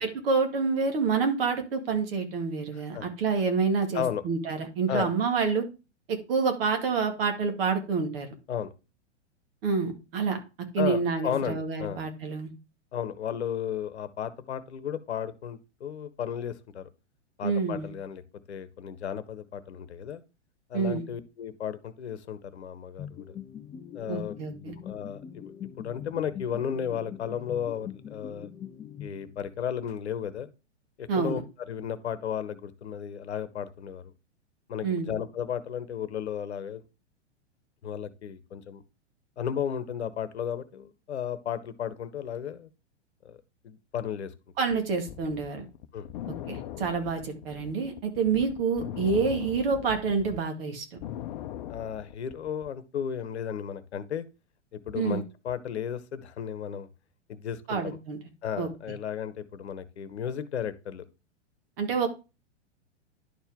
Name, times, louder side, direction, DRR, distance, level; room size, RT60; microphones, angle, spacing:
voice 1, 0.0-5.7 6.1-8.3 9.6-10.4 10.7-12.5 17.4-17.9 20.7-21.1 24.1-24.8 31.1-31.4 34.8-35.1 44.6-45.7 46.5-50.9 54.9-55.2 57.7-58.2 58.6-58.7 61.8-62.1, right 5 dB, 55° right, 2.1 m, -28 dB
voice 2, 2.7-3.1 3.9-4.2 4.9-5.1 8.5-8.7 10.8-12.0 12.9-16.9 17.4-18.2 18.5-20.2 20.7-23.3 23.9-24.3 24.8-25.5 25.8-28.5 29.0-30.5 31.0-31.4 31.7-34.1 34.7-36.8 37.8-38.8 39.4-42.7 43.2-43.4 43.6-44.3 45.9-46.1 51.7-54.2 54.7-56.9 57.3-58.0 58.4-61.0, left 8 dB, 65° left, 1.0 m, -34 dB
sound 1, 23.0-29.7, left 9 dB, 10° left, 0.4 m, -42 dB
sound 2, 44.7-50.4 50.8-52.7, left 11 dB, 45° left, 0.7 m, -40 dB
11.0 x 4.5 x 3.5 m
figure-of-eight pair, 105°, 35 cm